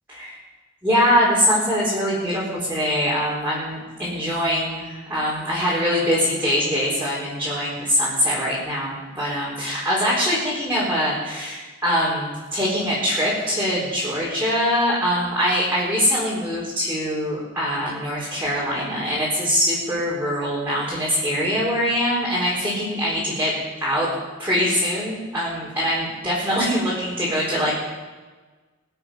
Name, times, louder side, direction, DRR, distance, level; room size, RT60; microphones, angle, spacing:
voice 1, 0.8-24.1 24.4-27.7, equal, 10° right, -8 dB, 4.1 m, -23 dB
22.0 x 8.0 x 5.7 m, 1.3 s
head